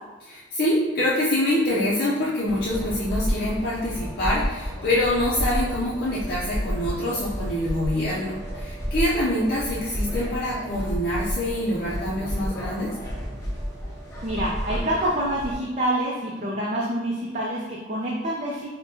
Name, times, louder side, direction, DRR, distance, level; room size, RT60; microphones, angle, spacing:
voice 1, 0.2-12.9, left 1 dB, 55° left, -7 dB, 0.5 m, -25 dB
sound 1, 2.4-15.6, equal, 15° left, 0.7 m, -31 dB
voice 2, 14.2-18.7, right 1 dB, 40° right, -4 dB, 0.5 m, -27 dB
5.1 x 2.1 x 2.7 m, 1.2 s
head